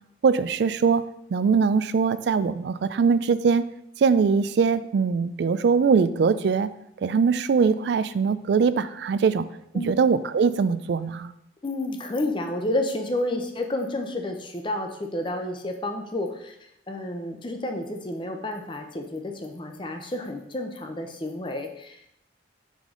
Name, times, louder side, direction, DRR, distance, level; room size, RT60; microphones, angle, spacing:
voice 1, 0.2-1.0 1.3-3.7 4.0-6.7 7.0-9.5 9.9-11.3, right 5 dB, 60° right, 14 dB, 0.3 m, -22 dB
voice 2, 11.6-16.5 16.9-22.1, left 1 dB, 25° left, 4 dB, 0.6 m, -30 dB
5.5 x 5.0 x 3.7 m, 0.77 s
head